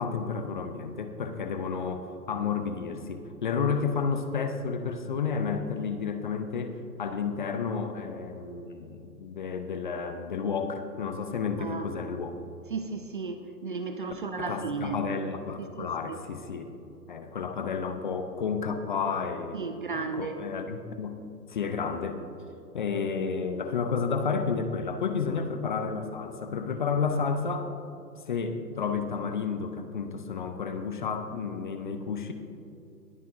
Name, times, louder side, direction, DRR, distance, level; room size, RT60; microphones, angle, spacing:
voice 1, 0.0-12.3 14.4-16.7 17.1-19.6 19.9-21.2 21.5-22.3 22.7-27.7 28.3-32.3, left 5 dB, 30° left, 7 dB, 0.5 m, -31 dB
voice 2, 11.6-11.9 12.7-15.0 15.6-15.9 19.5-20.5, right 4 dB, 35° right, 7 dB, 0.4 m, -34 dB
20.0 x 9.2 x 2.5 m, 2.8 s
figure-of-eight pair, 130°, 50 cm